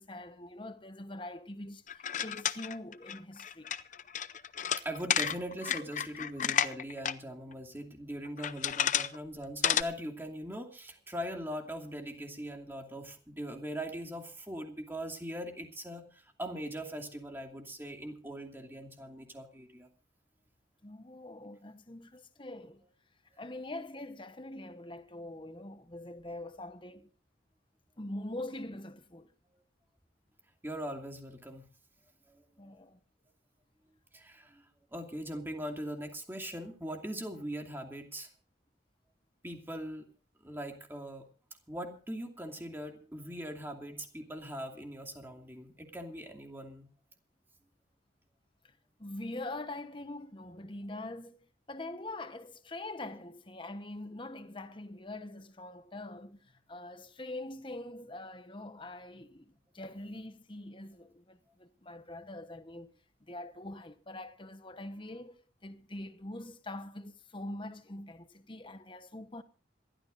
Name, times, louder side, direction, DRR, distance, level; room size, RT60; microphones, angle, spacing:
voice 1, 0.0-3.7 20.8-22.8 23.4-27.1 28.0-29.3 32.6-33.0 49.0-51.4 51.7-62.9 63.2-69.4, left 1 dB, 25° left, 1.1 m, -44 dB
sound 1, 1.9-7.1 7.5-7.6 8.3-9.2 9.4-9.8, left 9 dB, 45° left, 0.6 m, -31 dB
voice 2, 4.8-19.9 30.6-31.7 32.3-32.4 34.1-34.6 34.9-38.3 39.4-40.1 40.4-41.3 41.7-46.9, equal, 10° right, 2.6 m, -41 dB
26.5 x 13.0 x 2.6 m
head